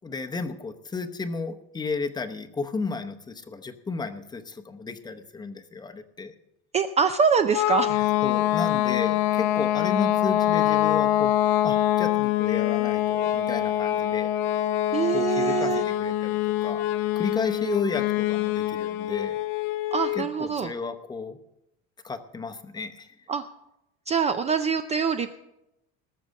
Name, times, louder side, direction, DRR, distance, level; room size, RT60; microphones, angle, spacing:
voice 1, 0.0-6.3 7.9-11.3 11.6-14.3 15.1-16.9 17.2-19.4 20.1-21.4 22.0-23.2, left 4 dB, 15° left, 7 dB, 0.7 m, -33 dB
voice 2, 6.7-8.0 14.9-15.8 19.9-20.7 23.3-23.4 24.1-25.4, right 6 dB, 20° right, 9 dB, 0.4 m, -24 dB
sound 1, 7.5-20.3, left 13 dB, 90° left, 0.9 m, -25 dB
19.0 x 6.8 x 6.3 m, 0.87 s
cardioid pair, 155°, 30 cm